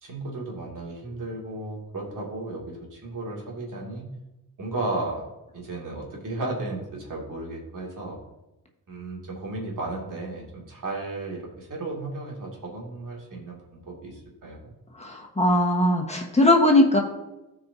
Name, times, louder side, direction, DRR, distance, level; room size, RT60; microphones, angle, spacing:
voice 1, 0.0-4.1 4.6-5.3 5.5-8.2 8.9-14.7, right 2 dB, 65° right, -2 dB, 2.6 m, -34 dB
voice 2, 15.0-17.0, left 1 dB, 20° left, 1 dB, 1.5 m, -20 dB
14.5 x 4.8 x 2.8 m, 0.99 s
cardioid pair, 70°, 35 cm